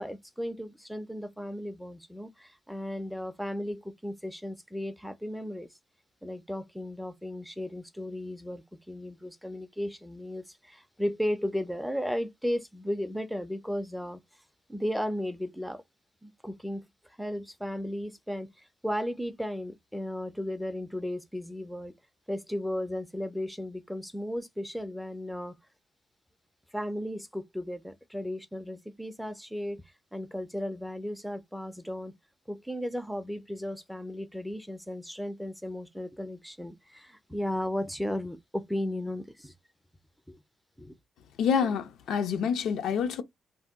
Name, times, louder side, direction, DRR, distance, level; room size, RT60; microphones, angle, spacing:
voice 1, 0.0-5.7 6.2-14.2 14.7-15.8 16.2-16.8 17.2-21.9 22.3-25.5 26.7-29.8 30.1-32.1 32.5-39.5 40.3-40.4 40.8-40.9, equal, ahead, 0.3 m, -35 dB
voice 2, 41.4-43.2, left 7 dB, 80° left, 0.5 m, -27 dB
2.7 x 2.2 x 3.3 m
cardioid pair, 160°, 0 cm